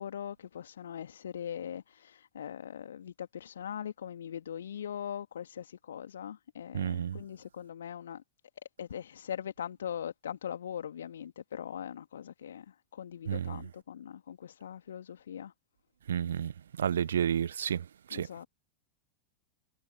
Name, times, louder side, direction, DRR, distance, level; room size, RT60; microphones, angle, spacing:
voice 1, 0.0-8.2 8.8-15.5 18.1-18.5, left 9 dB, 65° left, 1.8 m, -41 dB
voice 2, 6.7-7.2 13.3-13.6 16.1-16.5 16.8-18.3, right 8 dB, 65° right, 0.7 m, -31 dB
figure-of-eight pair, 90°, 0 cm